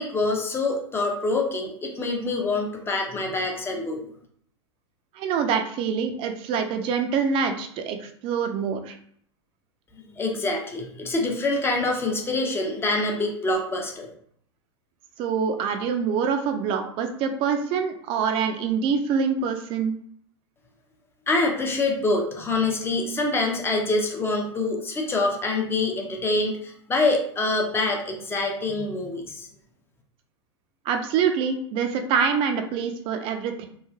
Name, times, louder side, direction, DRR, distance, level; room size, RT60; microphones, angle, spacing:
voice 1, 0.0-4.0 10.2-14.1 21.3-29.5, left 2 dB, 15° left, 1 dB, 0.7 m, -25 dB
voice 2, 5.1-9.0 15.2-19.9 30.9-33.7, right 6 dB, 40° right, 6 dB, 0.5 m, -25 dB
3.2 x 2.4 x 2.3 m, 0.63 s
figure-of-eight pair, 90°, 15 cm